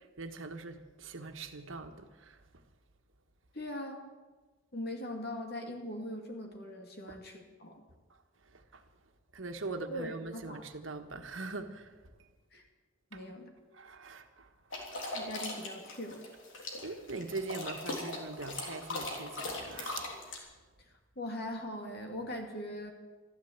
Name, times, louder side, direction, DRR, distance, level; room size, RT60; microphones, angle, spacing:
voice 1, 0.2-2.4 7.1-7.2 8.5-8.8 9.3-11.9 13.1-13.2 13.7-15.2 16.8-20.1, right 3 dB, 85° right, 1.4 m, -42 dB
voice 2, 3.5-4.0 4.7-7.8 9.9-10.7 12.5-12.7 13.1-13.5 15.1-16.2 21.2-22.9, left 1 dB, 55° left, 2.5 m, -41 dB
sound 1, 14.7-20.4, left 2 dB, 85° left, 3.4 m, -39 dB
13.5 x 13.0 x 8.1 m
head